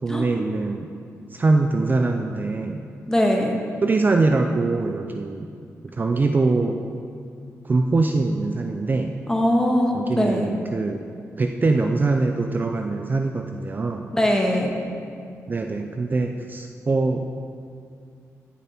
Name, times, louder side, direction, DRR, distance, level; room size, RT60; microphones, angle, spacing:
voice 1, 0.0-0.9 1.3-2.8 3.8-5.5 5.8-6.8 7.6-9.1 9.9-11.0 11.4-14.1 15.5-17.2, right 3 dB, 35° right, 4 dB, 0.5 m, -23 dB
voice 2, 3.1-3.5 9.3-10.5 14.1-14.7, equal, 10° left, 0 dB, 1.6 m, -21 dB
14.5 x 7.1 x 4.4 m, 2.3 s
cardioid pair, 90°, 6 cm